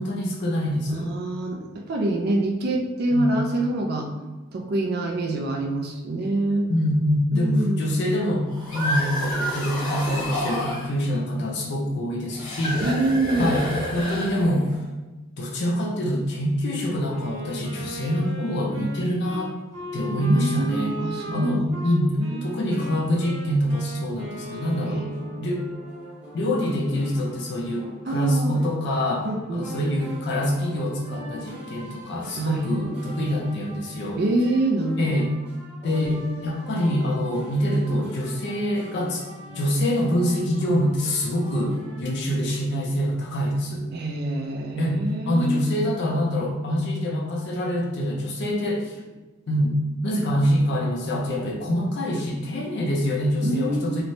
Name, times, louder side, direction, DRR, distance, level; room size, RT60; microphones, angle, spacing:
voice 1, 0.0-1.1 3.1-3.3 6.7-12.8 13.4-13.7 13.9-14.7 15.4-19.5 19.9-20.9 21.3-25.1 25.4-25.6 26.3-34.2 35.0-35.3 35.8-39.2 39.5-41.7 42.0-43.9 44.8-49.0 49.5-54.0, equal, 55° left, -1 dB, 0.4 m, -25 dB
voice 2, 0.9-4.1 4.5-6.7 7.3-7.9 12.8-13.6 20.2-22.4 24.8-25.0 28.1-28.5 29.2-30.0 32.4-32.7 34.2-35.2 43.9-45.6 53.4-53.9, right 2 dB, 50° right, 3 dB, 0.3 m, -26 dB
sound 1, 8.5-10.9 12.3-14.8, left 1 dB, 75° left, 1.0 m, -29 dB
Wind instrument woodwind instrument, 17.1-25.5, right 1 dB, 70° right, 1.1 m, -37 dB
sound 2, 24.2-42.0, equal, 5° right, 0.9 m, -43 dB
3.0 x 2.1 x 2.6 m, 1.1 s
head